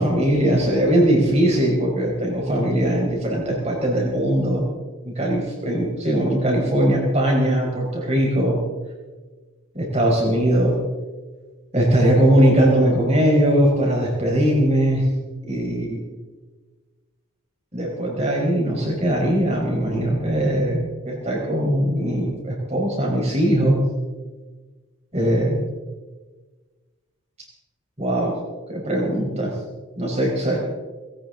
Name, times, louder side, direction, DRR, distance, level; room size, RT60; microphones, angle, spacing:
voice 1, 0.0-4.6 5.0-8.6 9.7-10.7 11.7-15.1 15.5-16.0 17.7-23.8 25.1-25.6 28.0-28.3 28.7-29.5 30.0-30.6, right 1 dB, 30° right, -1 dB, 4.8 m, -20 dB
19.5 x 18.0 x 3.9 m, 1.3 s
head